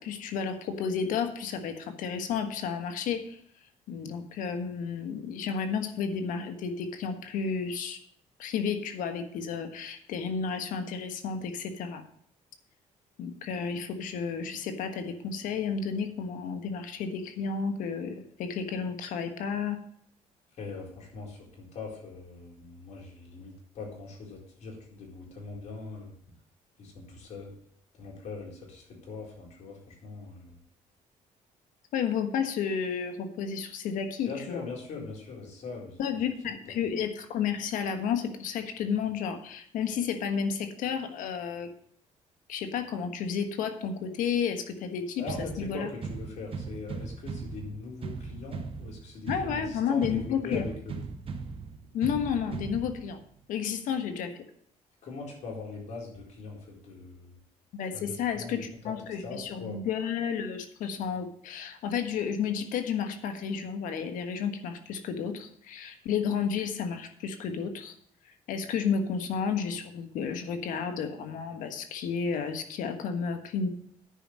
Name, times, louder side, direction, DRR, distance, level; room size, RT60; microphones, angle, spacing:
voice 1, 0.0-3.4 3.9-8.0 8.4-12.0 13.2-19.8 31.9-34.6 36.0-41.7 42.5-45.2 45.6-45.9 49.3-50.6 51.9-53.2 53.5-54.4 57.7-67.9 68.2-73.7, left 6 dB, 80° left, 7 dB, 1.4 m, -32 dB
voice 2, 20.6-26.1 26.8-27.5 28.0-30.6 34.2-36.0 45.2-45.4 45.7-51.0 55.0-57.4 57.9-58.0 58.3-58.9 59.2-59.8, left 4 dB, 60° left, -1 dB, 4.3 m, -41 dB
sound 1, 45.3-53.3, right 4 dB, 40° right, 1.2 m, -39 dB
10.0 x 5.5 x 7.4 m, 0.65 s
cardioid pair, 105°, 13 cm